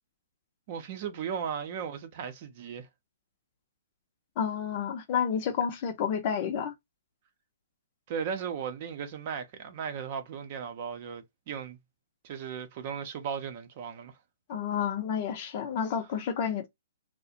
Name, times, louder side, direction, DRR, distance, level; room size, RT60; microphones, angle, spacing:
voice 1, 0.7-2.9 8.1-11.8 12.2-14.1, right 7 dB, 45° right, 0.6 m, -36 dB
voice 2, 4.4-6.7 14.5-16.7, left 7 dB, 40° left, 0.6 m, -30 dB
2.3 x 2.1 x 2.7 m
hypercardioid pair, 130°, 0 cm